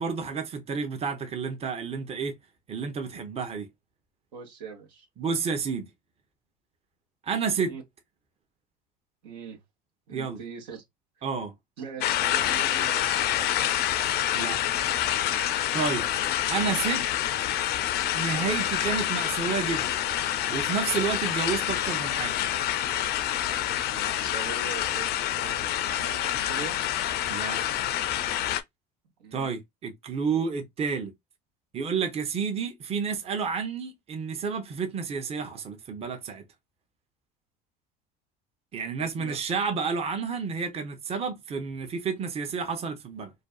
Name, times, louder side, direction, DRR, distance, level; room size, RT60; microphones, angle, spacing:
voice 1, 0.0-2.3 2.7-3.7 5.2-5.9 7.3-7.7 10.1-10.4 11.2-11.5 14.3-14.8 15.7-16.0 16.5-17.0 18.1-19.9 20.5-22.5 27.3-27.8 29.3-31.1 31.7-36.4 38.7-43.3, right 5 dB, 30° right, 0.7 m, -30 dB
voice 2, 4.3-5.1 7.7-7.8 9.2-9.6 10.1-10.8 11.2-11.3 11.8-13.6 16.0-16.1 23.7-26.7 29.2-29.5 39.0-39.4, right 5 dB, 80° right, 0.9 m, -42 dB
sound 1, 12.0-28.6, left 12 dB, 50° left, 0.4 m, -27 dB
2.5 x 2.3 x 2.3 m
hypercardioid pair, 85°, 21 cm